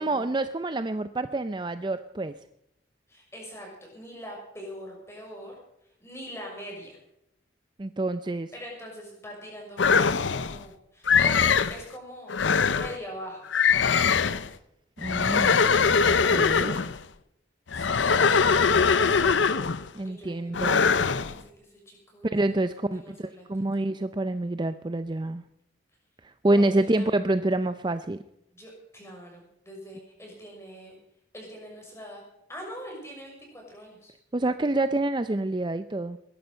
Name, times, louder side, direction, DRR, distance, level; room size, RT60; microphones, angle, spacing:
voice 1, 0.0-2.4 7.8-8.5 15.0-15.6 16.1-16.8 19.9-20.8 22.2-25.4 26.2-28.2 34.3-36.2, right 2 dB, 25° right, 11 dB, 0.5 m, -27 dB
voice 2, 3.1-5.5 5.8-7.0 8.5-12.4 12.7-13.4 16.5-16.9 17.7-18.4 18.9-23.4 23.8-23.9 26.5-27.1 28.5-31.0 31.3-32.2 32.5-34.1, equal, 15° left, -1 dB, 6.3 m, -43 dB
sound 1, 9.8-10.6 11.1-11.8 12.3-13.0 13.5-14.5 15.0-17.0 17.7-19.9 20.5-21.3, left 5 dB, 80° left, 0.7 m, -22 dB
21.0 x 11.5 x 5.5 m, 0.80 s
head